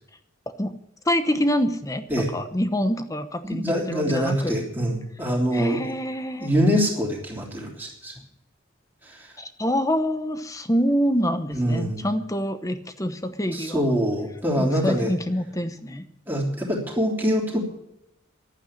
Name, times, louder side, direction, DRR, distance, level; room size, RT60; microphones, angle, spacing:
voice 1, 1.1-4.6 5.5-6.5 9.4-13.8 14.6-16.0, equal, 15° left, 10 dB, 0.9 m, -26 dB
voice 2, 3.4-5.8 6.4-8.1 9.0-9.3 11.5-12.0 13.5-15.1 16.3-17.6, equal, 10° right, -2 dB, 3.3 m, -24 dB
11.5 x 9.0 x 9.9 m, 0.81 s
head